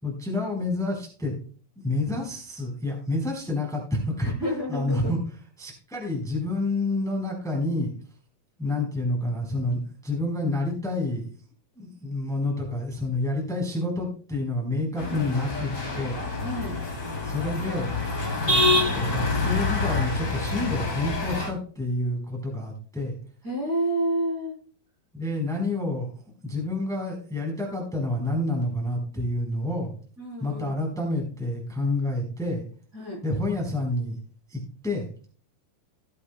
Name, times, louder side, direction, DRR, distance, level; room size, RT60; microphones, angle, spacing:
voice 1, 0.0-1.3 1.8-4.3 4.7-5.2 5.6-7.9 8.6-11.3 11.8-16.2 17.2-17.9 18.4-23.1 25.1-26.1 26.4-29.9 30.4-32.6 33.2-34.2 34.5-35.1, left 2 dB, ahead, -1 dB, 3.7 m, -28 dB
voice 2, 4.2-5.1 16.4-16.7 23.4-24.5 30.2-30.8 32.9-33.2, right 1 dB, 25° right, -5 dB, 4.3 m, -29 dB
sound 1, 15.0-21.5, left 2 dB, 25° left, 3.3 m, -26 dB
18.5 x 8.6 x 2.2 m, 0.43 s
omnidirectional pair, 4.0 m